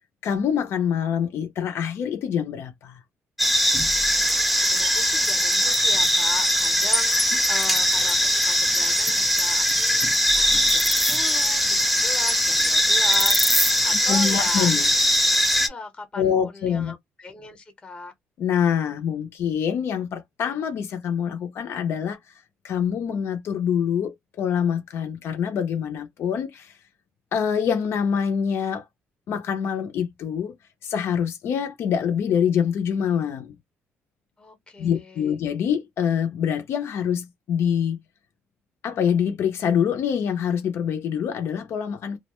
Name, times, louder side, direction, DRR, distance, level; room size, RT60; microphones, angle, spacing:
voice 1, 0.2-3.0 14.1-14.9 16.2-16.9 18.4-22.2 22.6-26.7 27.3-28.8 29.3-30.5 30.8-33.6 34.8-38.0 38.8-42.2, left 8 dB, 60° left, 0.5 m, -25 dB
sound 1, 3.4-15.7, equal, ahead, 0.4 m, -21 dB
voice 2, 4.6-14.7 15.5-18.1 34.4-35.4, left 3 dB, 20° left, 0.8 m, -39 dB
2.3 x 2.1 x 2.9 m
cardioid pair, 135°, 5 cm